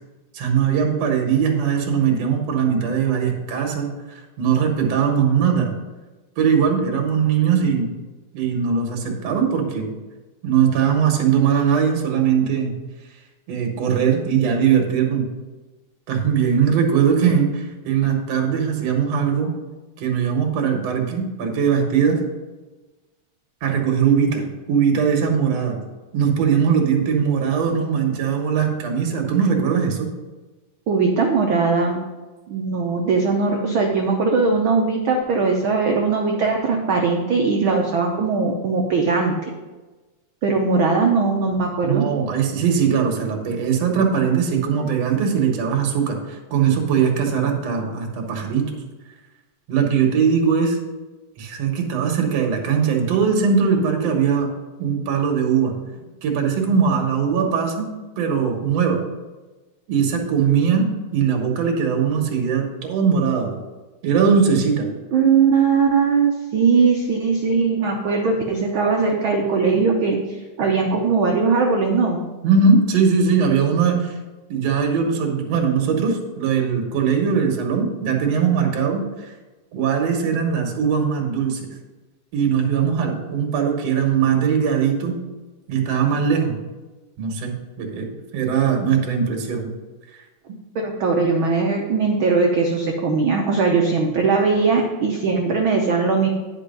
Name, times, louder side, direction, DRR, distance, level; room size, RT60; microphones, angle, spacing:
voice 1, 0.3-5.7 6.4-7.9 8.3-9.9 10.4-12.7 13.5-15.3 16.1-19.5 20.0-22.2 23.6-25.8 26.1-30.1 41.8-48.7 49.7-50.8 51.4-54.5 54.8-55.7 56.2-57.9 58.2-59.0 59.9-63.5 64.0-64.9 72.4-74.2 74.5-79.3 79.7-81.7 82.3-85.2 85.7-86.5 87.2-89.7, right 6 dB, 60° right, 2 dB, 2.3 m, -20 dB
voice 2, 30.9-32.0 32.5-39.5 40.4-42.1 65.1-72.2 90.7-96.3, right 4 dB, 85° right, 1 dB, 1.1 m, -20 dB
9.9 x 5.4 x 5.4 m, 1.2 s
omnidirectional pair, 3.5 m